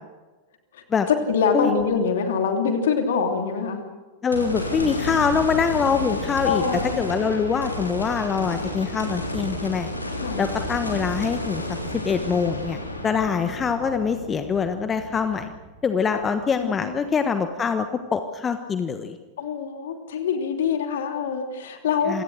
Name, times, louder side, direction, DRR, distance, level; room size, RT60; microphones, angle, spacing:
voice 1, 0.7-3.8 6.4-7.0 10.2-10.4 16.6-17.0 19.4-22.2, left 6 dB, 60° left, 5 dB, 3.0 m, -25 dB
voice 2, 4.2-6.6 7.0-9.9 10.4-11.6 11.9-15.5 15.8-19.2 22.1-22.2, left 6 dB, 20° left, 8 dB, 1.3 m, -24 dB
sound 1, 4.3-16.6 17.1-17.2 20.5-20.6, left 1 dB, 85° left, 3.2 m, -32 dB
28.0 x 17.5 x 6.4 m, 1.2 s
figure-of-eight pair, 90°, 0 cm